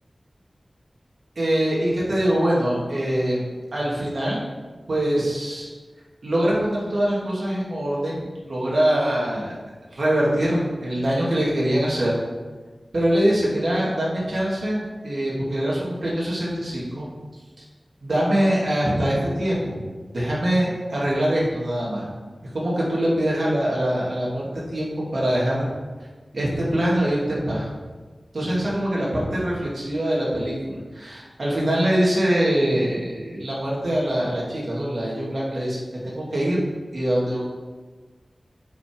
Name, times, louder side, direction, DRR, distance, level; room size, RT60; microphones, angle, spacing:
voice 1, 1.4-4.4 4.9-5.7 6.2-9.5 9.9-12.1 12.9-17.1 18.0-19.8 20.1-22.1 22.5-25.7 26.3-27.7 28.3-36.6 36.9-37.4, right 1 dB, 70° right, -5 dB, 2.3 m, -23 dB
7.0 x 4.9 x 5.2 m, 1.4 s
wide cardioid pair, 80°, 0 cm